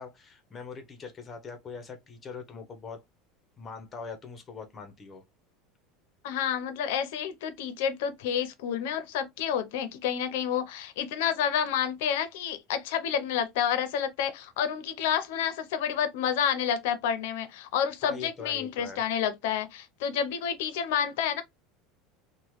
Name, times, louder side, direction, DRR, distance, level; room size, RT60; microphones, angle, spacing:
voice 1, 0.0-3.0 3.6-5.2 18.0-19.0, left 5 dB, 25° left, 0.7 m, -42 dB
voice 2, 6.2-21.4, left 8 dB, 80° left, 0.5 m, -29 dB
3.0 x 2.1 x 3.0 m
supercardioid pair, 135°, 0 cm